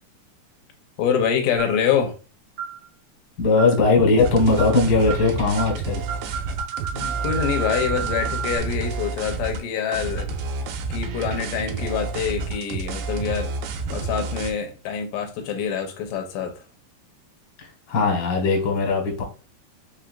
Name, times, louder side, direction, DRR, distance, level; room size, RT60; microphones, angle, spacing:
voice 1, 1.0-2.2 6.9-10.3 10.9-13.5 13.9-16.6, left 7 dB, 80° left, 2.3 m, -25 dB
sound 1, 1.6-1.9 2.6-2.8 3.6-3.9 4.6-4.8 5.1-5.3 5.6-5.8 6.1-8.6, right 8 dB, 60° right, 1.3 m, -31 dB
voice 2, 3.4-6.0 17.6-19.2, left 3 dB, 50° left, 1.3 m, -19 dB
sound 2, 4.2-9.6 9.9-14.5, right 3 dB, 90° right, 2.4 m, -29 dB
5.7 x 3.3 x 2.5 m
omnidirectional pair, 3.9 m